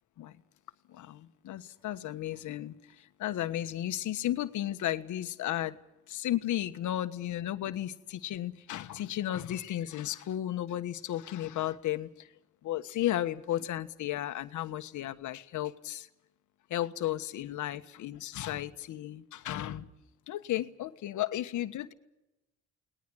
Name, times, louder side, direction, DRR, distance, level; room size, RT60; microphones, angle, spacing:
voice 1, 0.9-5.8 6.1-12.3 12.6-16.1 16.7-19.9 20.3-21.9, left 13 dB, 80° left, 10 dB, 1.4 m, -34 dB
30.0 x 20.0 x 6.3 m, 0.93 s
cardioid pair, 90°, 30 cm